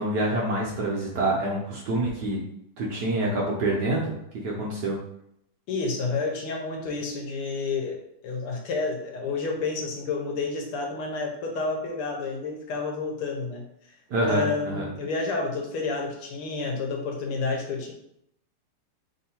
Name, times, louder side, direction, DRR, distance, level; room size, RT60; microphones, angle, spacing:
voice 1, 0.0-2.4 2.8-4.2 4.4-5.0 14.1-14.4 14.7-14.9, right 1 dB, 70° right, -3 dB, 1.1 m, -26 dB
voice 2, 5.7-8.0 8.2-14.0 14.2-17.9, left 4 dB, 85° left, 1 dB, 1.7 m, -30 dB
3.6 x 2.7 x 4.2 m, 0.76 s
omnidirectional pair, 2.4 m